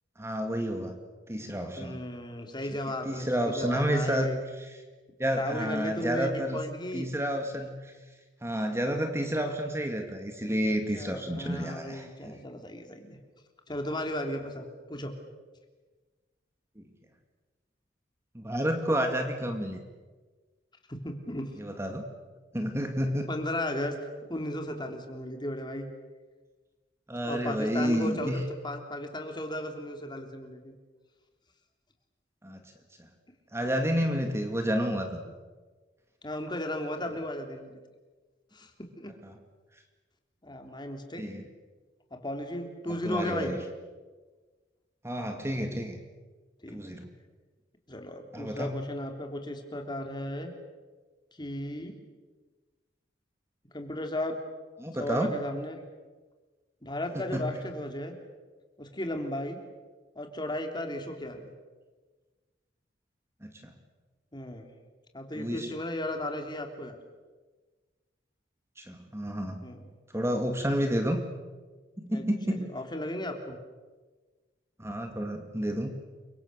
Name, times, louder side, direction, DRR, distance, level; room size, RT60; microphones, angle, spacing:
voice 1, 0.2-1.0 1.3-2.0 3.1-4.3 5.2-6.6 6.9-7.9 8.4-12.4 16.8-16.9 18.3-19.8 21.6-22.0 22.5-23.3 27.1-28.4 32.4-32.6 33.0-33.1 33.5-35.2 41.2-41.5 42.9-43.6 45.0-46.0 46.7-47.1 48.3-48.8 54.8-55.3 57.2-57.6 63.4-63.7 65.4-65.7 68.8-69.7 70.1-71.2 72.0-72.7 74.8-75.9, equal, 15° right, 5 dB, 2.2 m, -30 dB
voice 2, 1.8-4.4 5.4-7.1 10.7-13.2 13.7-15.1 21.0-21.6 23.3-25.9 27.3-30.7 33.9-34.0 36.2-37.8 38.5-39.1 40.4-41.2 42.1-43.5 46.6-47.0 47.9-50.5 51.4-51.9 53.7-54.3 54.9-55.8 56.8-58.1 58.8-59.6 60.1-61.5 64.3-64.7 65.1-67.0 69.6-69.9 72.1-72.2 72.6-73.6, left 1 dB, 25° left, 4 dB, 3.4 m, -35 dB
29.5 x 24.5 x 6.9 m, 1.3 s
head